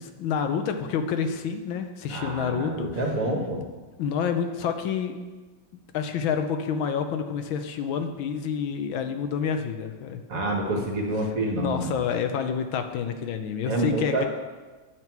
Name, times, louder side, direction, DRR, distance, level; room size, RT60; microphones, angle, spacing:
voice 1, 0.0-2.9 4.0-5.2 5.9-10.2 10.7-10.9 11.5-14.3, left 7 dB, 80° left, 7 dB, 1.5 m, -28 dB
voice 2, 2.1-3.6 10.3-11.9 13.7-14.3, right 1 dB, 45° right, 0 dB, 1.5 m, -27 dB
9.1 x 7.5 x 4.6 m, 1.3 s
omnidirectional pair, 2.2 m